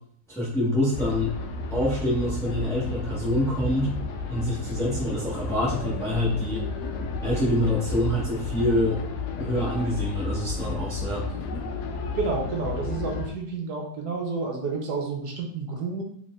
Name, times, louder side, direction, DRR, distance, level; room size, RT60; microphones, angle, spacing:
voice 1, 0.3-1.3 1.7-3.9 4.3-6.6 7.2-9.0 9.4-11.2, left 1 dB, ahead, -7 dB, 1.0 m, -26 dB
sound 1, 0.9-13.3, left 4 dB, 80° left, 1.1 m, -32 dB
voice 2, 12.2-16.0, right 4 dB, 75° right, 1 dB, 1.2 m, -30 dB
4.2 x 3.4 x 2.4 m, 0.65 s
omnidirectional pair, 1.8 m